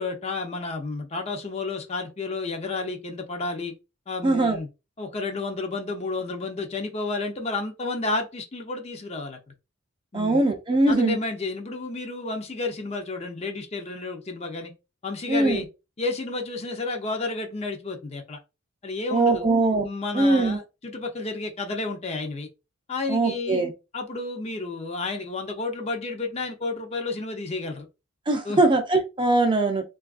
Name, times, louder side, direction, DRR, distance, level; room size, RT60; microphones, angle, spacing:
voice 1, 0.0-3.7 4.1-4.7 5.0-9.4 10.1-10.5 10.9-14.7 15.0-15.7 16.0-18.4 18.8-19.5 19.8-22.5 22.9-23.6 23.9-27.9 28.4-28.6, left 3 dB, 30° left, 0.5 m, -31 dB
voice 2, 4.2-4.6 10.1-11.2 15.3-15.6 19.1-19.9 20.1-20.6 23.1-23.7 28.3-29.8, right 2 dB, 25° right, 0.5 m, -21 dB
3.3 x 2.3 x 2.4 m
head